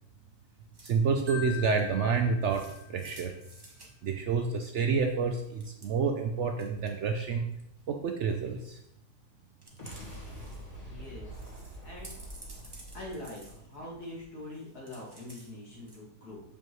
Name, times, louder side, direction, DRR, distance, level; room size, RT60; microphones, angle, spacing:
sound 1, 0.7-1.0 1.5-1.9 2.5-3.9 5.4-5.9 6.5-6.9 7.3-7.8 8.4-8.9 9.6-10.6 10.9-11.0 11.3-14.2 14.5-15.5 15.9-16.0, right 2 dB, 20° right, 0.7 m, -53 dB
voice 1, 0.8-3.3 4.0-7.5 7.9-8.8, right 5 dB, 70° right, 4 dB, 0.7 m, -29 dB
Marimba xylophone, 1.3-3.3, left 11 dB, 50° right, 1.1 m, -43 dB
sound 2, 9.7-14.2, right 1 dB, 25° left, 1.8 m, -45 dB
voice 2, 10.8-11.4 11.8-12.2 12.9-16.4, left 1 dB, 75° left, -5 dB, 2.5 m, -43 dB
6.3 x 5.3 x 3.0 m, 0.82 s
omnidirectional pair, 1.7 m